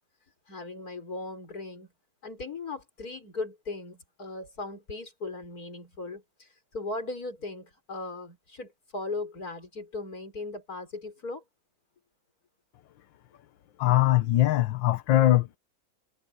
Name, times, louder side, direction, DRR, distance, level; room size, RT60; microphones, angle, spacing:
voice 1, 0.5-1.9 2.2-11.4, left 3 dB, 50° left, 5.5 m, -38 dB
voice 2, 13.8-15.6, left 15 dB, 80° left, 1.6 m, -22 dB
omnidirectional pair, 2.1 m